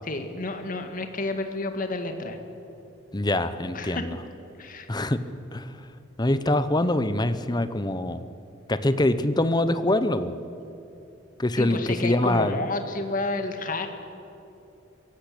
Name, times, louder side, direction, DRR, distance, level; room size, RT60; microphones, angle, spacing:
voice 1, 0.0-2.4 3.7-4.1 4.6-4.9 11.6-13.9, left 2 dB, 45° left, 6 dB, 2.0 m, -30 dB
voice 2, 3.1-4.1 4.9-5.2 5.5-5.7 6.2-8.2 8.7-10.3 11.4-12.5, left 1 dB, 20° left, 12 dB, 0.9 m, -24 dB
23.5 x 17.0 x 8.7 m, 2.8 s
head